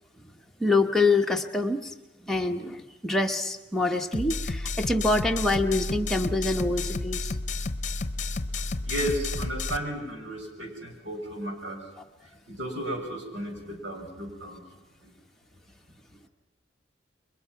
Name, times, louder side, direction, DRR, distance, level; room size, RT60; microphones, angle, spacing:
voice 1, 0.6-1.9 2.2-7.3, left 2 dB, ahead, 2 dB, 1.2 m, -25 dB
sound 1, 4.1-9.8, left 3 dB, 40° left, 0.9 m, -31 dB
voice 2, 8.8-11.9 12.5-14.6 15.0-15.1, right 1 dB, 85° right, 2 dB, 6.0 m, -34 dB
29.5 x 23.0 x 5.9 m, 0.97 s
head